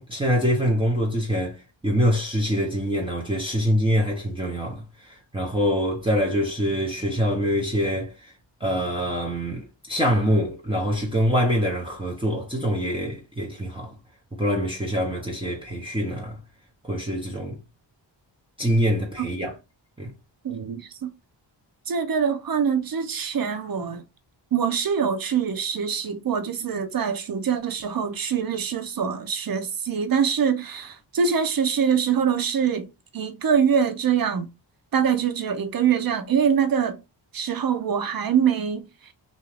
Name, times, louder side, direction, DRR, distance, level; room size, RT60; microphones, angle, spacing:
voice 1, 0.0-1.6 1.8-8.3 8.6-13.9 14.4-16.4 16.8-17.6 18.6-19.5 20.0-20.1, equal, 10° right, 0.8 m, -24 dB
voice 2, 20.4-21.1 21.9-24.0 24.5-32.9 33.1-34.5 34.9-37.0 37.3-38.8, right 7 dB, 50° right, 0.7 m, -24 dB
2.6 x 2.4 x 3.2 m
cardioid pair, 65°, 45 cm